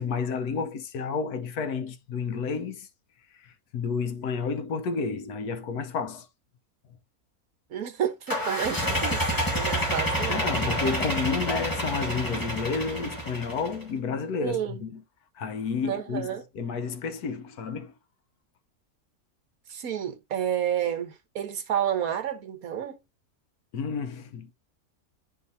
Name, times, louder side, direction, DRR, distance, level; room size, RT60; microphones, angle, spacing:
voice 1, 0.0-2.9 3.3-6.3 10.3-15.0 15.3-17.9 23.7-24.5, left 5 dB, 90° left, 1.4 m, -31 dB
voice 2, 7.7-10.4 14.4-14.8 15.8-16.4 19.7-23.0, right 9 dB, 70° right, 1.5 m, -30 dB
sound 1, 8.3-13.8, equal, 15° left, 1.7 m, -28 dB
9.1 x 4.6 x 2.7 m
omnidirectional pair, 1.6 m